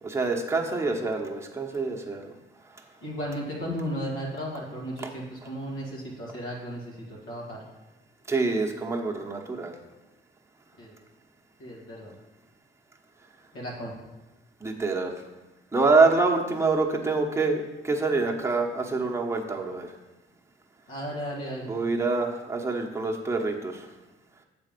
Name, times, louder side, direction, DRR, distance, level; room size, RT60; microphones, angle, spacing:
voice 1, 0.0-2.3 5.0-5.1 8.3-9.7 14.6-15.2 15.7-19.9 21.6-23.9, right 3 dB, 15° right, 0 dB, 1.0 m, -26 dB
voice 2, 3.0-6.8 7.1-7.6 10.8-10.9 11.6-12.1 13.5-13.9 20.9-21.7, equal, 80° left, -5 dB, 1.9 m, -34 dB
7.2 x 4.2 x 5.3 m, 1.1 s
cardioid pair, 90°, 20 cm